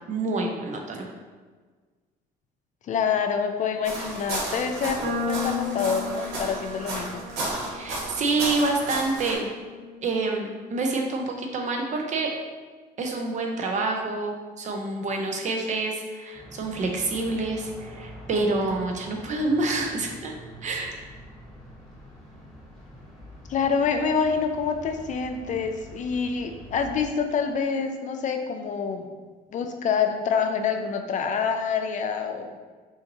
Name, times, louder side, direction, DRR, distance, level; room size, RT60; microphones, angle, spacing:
voice 1, 0.1-1.1 7.6-9.5 10.0-12.3 13.0-20.3 20.6-20.9, right 3 dB, 45° right, 2 dB, 0.8 m, -27 dB
voice 2, 2.9-7.2 23.5-29.1 29.5-32.5, left 6 dB, 45° left, 5 dB, 0.5 m, -26 dB
sound 1, 3.8-9.3, right 2 dB, 75° right, 1.3 m, -33 dB
sound 2, 5.0-11.4, left 4 dB, 30° right, 1.2 m, -36 dB
sound 3, 16.3-27.0, equal, ahead, 1.2 m, -45 dB
5.6 x 2.7 x 3.0 m, 1.4 s
cardioid pair, 110°, 17 cm